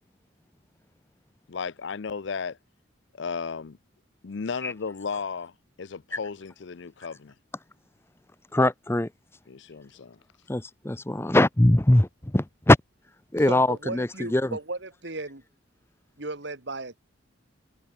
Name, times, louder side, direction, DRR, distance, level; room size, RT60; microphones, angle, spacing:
voice 1, 1.5-2.6 3.2-3.8 4.2-5.5 5.8-7.3 9.5-10.2, left 5 dB, 65° left, 0.5 m, -34 dB
voice 2, 8.5-9.1 10.5-12.1 12.3-12.8 13.3-14.6, left 1 dB, 10° left, 0.6 m, -21 dB
voice 3, 13.5-15.4 16.2-17.0, right 2 dB, 60° right, 1.8 m, -35 dB
head